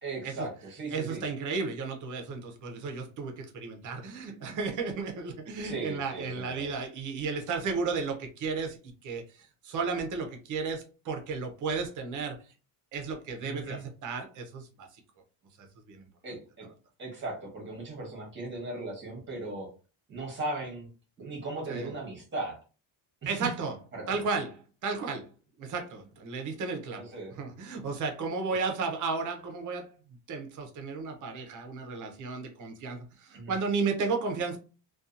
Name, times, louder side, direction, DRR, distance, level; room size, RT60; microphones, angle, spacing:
voice 1, 0.0-1.2 5.6-6.7 13.4-13.8 16.2-16.7 17.0-19.7 20.1-20.9 21.2-22.6 23.2-23.5 23.9-24.2 27.0-27.4 33.3-33.5, right 2 dB, 25° right, 1.0 m, -37 dB
voice 2, 0.9-9.2 9.6-12.4 12.9-14.9 15.9-16.1 21.7-21.9 23.3-23.7 24.1-25.3 25.6-29.9 30.3-34.6, right 4 dB, 40° right, 0.6 m, -33 dB
2.7 x 2.3 x 2.4 m
cardioid pair, 170°, 49 cm